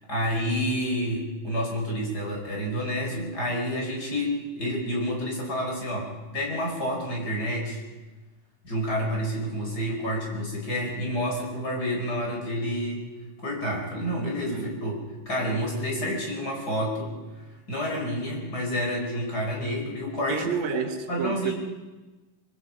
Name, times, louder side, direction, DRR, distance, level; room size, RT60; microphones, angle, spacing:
voice 1, 0.1-7.8 8.6-13.0 13.4-15.0 15.3-17.1 17.7-20.5 21.1-21.5, equal, 25° left, 5.5 m, -29 dB
voice 2, 20.3-21.5, right 5 dB, 90° right, 3.4 m, -29 dB
24.0 x 22.5 x 5.5 m
omnidirectional pair, 3.9 m